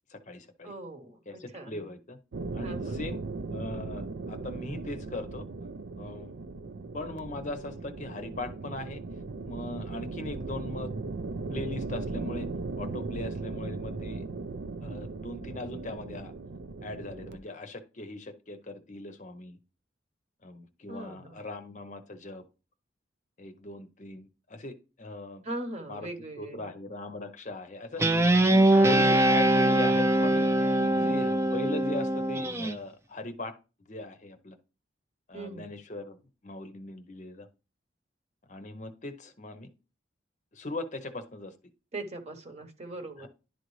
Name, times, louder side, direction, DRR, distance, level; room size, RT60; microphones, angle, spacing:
voice 1, 0.1-0.7 1.3-2.2 2.5-3.2 3.5-5.5 6.0-6.3 6.9-9.0 9.4-10.9 11.5-12.5 12.8-14.2 14.8-16.3 16.8-19.6 20.4-22.4 23.4-25.4 25.9-26.1 26.4-28.0 28.4-30.5 30.8-33.5 33.9-34.6 35.3-36.2 36.4-37.5 38.5-39.7 40.5-41.5 43.2-43.3, left 2 dB, 40° left, 8 dB, 0.7 m, -39 dB
voice 2, 0.6-1.8 2.6-3.0 20.9-21.4 25.4-26.7 28.7-29.3 35.3-35.7 41.9-43.3, right 2 dB, 35° right, 5 dB, 1.0 m, -40 dB
sound 1, 2.3-17.4, right 3 dB, 75° right, 0.5 m, -37 dB
Guitar, 28.0-32.7, right 1 dB, 15° right, 0.4 m, -23 dB
11.0 x 3.9 x 3.1 m, 0.32 s
head